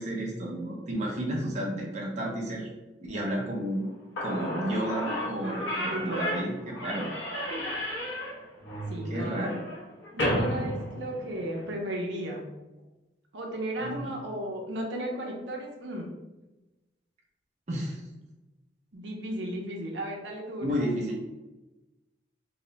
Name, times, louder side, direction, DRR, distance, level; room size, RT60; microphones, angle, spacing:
voice 1, 0.0-2.7 3.0-3.9 4.2-7.1 8.8-8.9 9.1-9.7 13.8-14.1 17.7-18.0 20.6-21.2, right 1 dB, 40° right, -2 dB, 0.5 m, -32 dB
Slam / Squeak, 3.9-4.0 4.2-11.6, equal, 90° left, 1.0 m, -33 dB
voice 2, 5.9-6.4 7.5-7.6 8.9-9.5 10.1-12.4 13.3-16.1 18.9-20.7, right 1 dB, 80° right, 0 dB, 0.6 m, -35 dB
2.7 x 2.1 x 3.9 m, 1.0 s
head